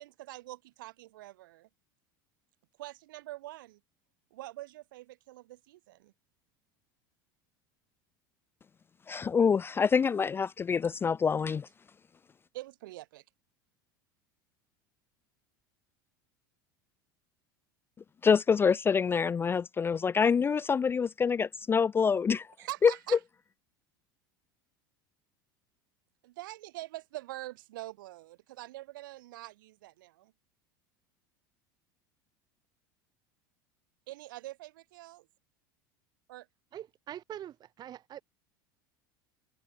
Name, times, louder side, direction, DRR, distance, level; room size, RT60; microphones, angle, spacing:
voice 1, 0.0-1.7 2.8-3.8 4.3-6.1 12.5-13.2 22.6-23.2 26.2-30.3 34.1-35.3 36.3-36.5, right 17 dB, 70° right, 4.2 m, -44 dB
voice 2, 9.1-11.7 18.2-22.5 22.8-22.9, left 6 dB, 20° left, 0.3 m, -26 dB
voice 3, 36.7-38.2, right 11 dB, 40° right, 0.9 m, -44 dB
hypercardioid pair, 80°, 11 cm